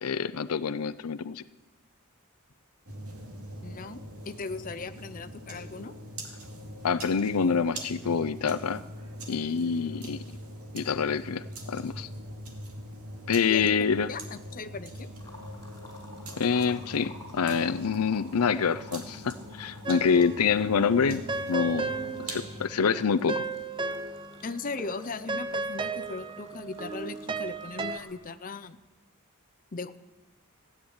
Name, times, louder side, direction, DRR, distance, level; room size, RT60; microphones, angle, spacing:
voice 1, 0.0-1.4 6.8-8.8 9.3-10.2 10.7-12.1 13.3-14.1 16.4-21.2 21.5-21.9 22.2-23.4, left 6 dB, 85° left, 14 dB, 0.6 m, -26 dB
sound 1, 2.9-22.7, equal, 85° right, 2.4 m, -43 dB
voice 2, 3.6-5.9 13.5-13.7 14.1-15.1 24.4-28.8 29.7-30.0, left 4 dB, 40° left, 10 dB, 0.7 m, -38 dB
sound 2, 15.1-28.2, left 1 dB, 15° left, 4.0 m, -51 dB
sound 3, 19.9-20.5 20.8-24.5 24.8-28.0, right 3 dB, 20° right, 0.6 m, -35 dB
16.0 x 8.8 x 9.6 m, 1.1 s
head